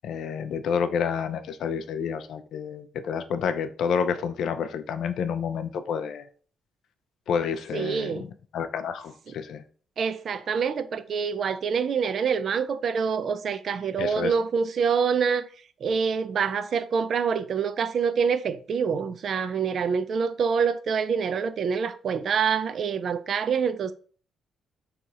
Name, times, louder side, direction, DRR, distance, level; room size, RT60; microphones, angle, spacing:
voice 1, 0.0-6.3 7.3-8.3 8.5-9.6 14.0-14.3, left 6 dB, 70° left, 0.4 m, -29 dB
voice 2, 7.7-8.2 10.0-15.5 15.8-23.9, right 6 dB, 55° right, 0.3 m, -26 dB
2.7 x 2.4 x 4.1 m
cardioid pair, 90°, 0 cm